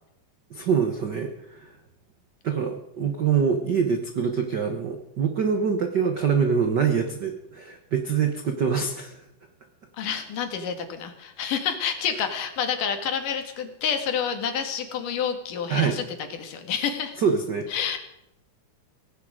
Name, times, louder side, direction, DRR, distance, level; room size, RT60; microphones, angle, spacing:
voice 1, 0.5-1.7 2.4-9.2 15.7-16.0 17.2-17.7, right 6 dB, 70° right, 5 dB, 1.0 m, -25 dB
voice 2, 10.0-16.0 16.3-17.2 17.7-18.0, left 7 dB, 80° left, 6 dB, 3.4 m, -28 dB
17.0 x 16.0 x 5.0 m, 0.83 s
omnidirectional pair, 3.8 m